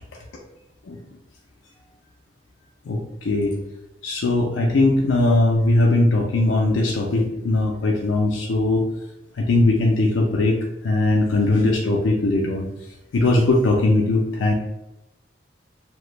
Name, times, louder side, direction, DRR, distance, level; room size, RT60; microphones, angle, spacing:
voice 1, 2.9-3.5 4.0-8.8 9.4-10.6 10.8-12.7 13.1-14.5, left 2 dB, 85° left, -1 dB, 0.4 m, -19 dB
2.9 x 2.1 x 3.1 m, 0.94 s
head